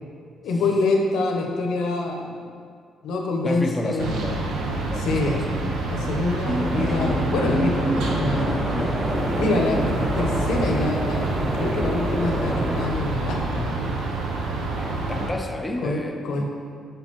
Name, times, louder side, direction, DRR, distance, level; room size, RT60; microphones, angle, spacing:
voice 1, 0.4-2.4 3.0-4.2 5.0-5.4 5.9-8.6 9.4-13.8 15.8-16.4, left 2 dB, 85° left, 1 dB, 0.8 m, -26 dB
voice 2, 3.4-4.4 4.9-6.4 14.8-16.4, left 1 dB, 15° left, 2 dB, 0.5 m, -32 dB
sound 1, 4.0-15.3, right 2 dB, 85° right, 0.7 m, -28 dB
sound 2, 6.5-12.9, equal, 15° right, 0.7 m, -26 dB
6.4 x 5.2 x 3.0 m, 2.1 s
cardioid pair, 90°, 0 cm